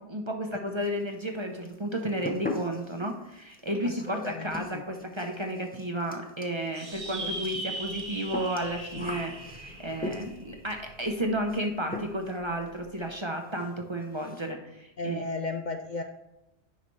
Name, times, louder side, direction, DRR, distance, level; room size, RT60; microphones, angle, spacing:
voice 1, 0.0-15.2, right 1 dB, 30° right, 3 dB, 0.7 m, -32 dB
sound 1, 0.8-1.4 1.6-10.5 11.5-11.7 11.9-12.4 12.7-12.8 13.2-13.3 13.5-13.7 14.0-14.5, left 2 dB, 10° left, 0.6 m, -40 dB
voice 2, 3.8-4.8 7.2-7.3 15.0-16.0, left 3 dB, 55° left, 5 dB, 0.6 m, -35 dB
sound 2, 6.7-11.5, right 1 dB, 50° right, 1.4 m, -39 dB
9.4 x 5.7 x 3.2 m, 0.91 s
omnidirectional pair, 1.1 m